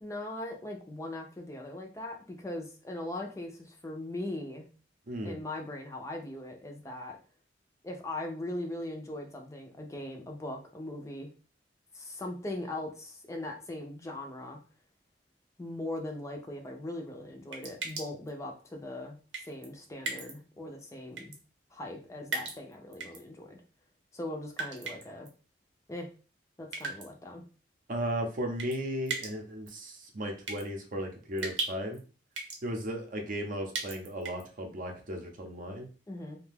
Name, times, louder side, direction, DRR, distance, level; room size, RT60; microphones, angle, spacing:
voice 1, 0.0-4.7 5.2-7.2 7.8-11.3 11.9-14.6 15.6-19.2 19.5-21.3 21.7-23.6 24.1-25.3 25.9-26.1 26.6-27.4 36.1-36.4, left 1 dB, 15° left, 2 dB, 0.4 m, -40 dB
voice 2, 5.1-5.4 27.9-32.0 32.6-35.9, equal, 50° right, 3 dB, 0.6 m, -35 dB
sound 1, 17.5-18.3 19.3-19.7 20.1-20.3 21.2-21.4 22.3-23.2 24.5-25.3 26.7-27.1 28.6-28.8 29.1-29.3 29.7-29.8 30.5-30.6 31.4-32.0 32.4-32.6 33.7-34.4, right 3 dB, 80° right, 0.8 m, -36 dB
2.6 x 2.2 x 3.3 m, 0.36 s
head